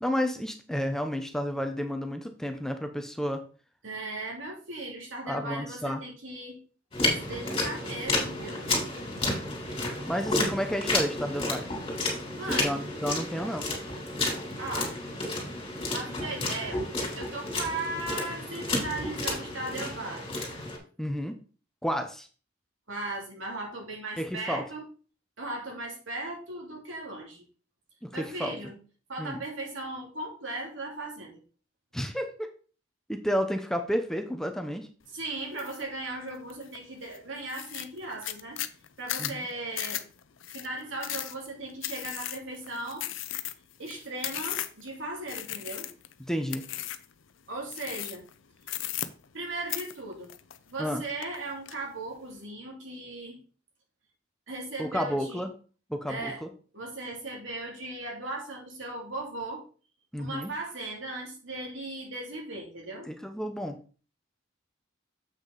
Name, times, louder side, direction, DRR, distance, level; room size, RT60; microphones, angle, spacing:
voice 1, 0.0-3.4 5.3-6.0 10.1-11.7 12.5-13.7 21.0-21.4 21.8-22.3 24.2-24.6 28.0-28.5 29.2-29.4 31.9-32.5 33.1-34.9 39.2-39.4 46.2-46.7 50.8-51.0 54.8-55.5 55.9-56.5 60.1-60.5 63.1-63.8, equal, 5° left, 6 dB, 0.7 m, -31 dB
voice 2, 3.8-6.6 7.2-8.7 12.3-12.8 14.6-14.9 15.9-16.8 17.2-20.3 22.9-24.8 25.4-27.4 28.1-28.8 29.1-31.4 35.1-38.6 39.0-40.0 40.5-43.1 43.8-45.9 47.5-48.2 49.3-50.3 50.7-53.4 54.5-55.4 56.1-56.4 56.7-59.6 60.2-63.1, right 2 dB, 75° right, -1 dB, 2.7 m, -37 dB
sound 1, 6.9-20.8, left 2 dB, 30° left, 2.9 m, -31 dB
sound 2, 35.6-35.8 36.3-36.8 37.1-37.2 37.5-44.9 45.3-46.1 46.5-47.1 47.7-48.3 48.6-49.4 49.7-50.9 51.2-51.8, left 13 dB, 75° left, 0.6 m, -36 dB
7.5 x 5.8 x 3.9 m, 0.38 s
head